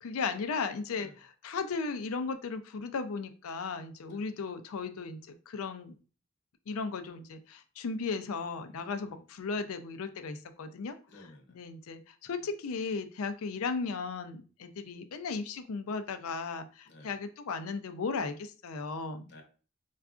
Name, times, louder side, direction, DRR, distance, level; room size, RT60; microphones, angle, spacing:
voice 1, 0.0-5.9 6.7-10.9 11.5-19.3, left 4 dB, 75° left, 9 dB, 0.4 m, -36 dB
voice 2, 0.9-1.2 4.1-4.3 8.7-9.2 11.1-11.6 16.9-17.1 19.3-19.4, left 1 dB, 50° left, 3 dB, 0.8 m, -54 dB
4.4 x 2.4 x 2.4 m, 0.37 s
head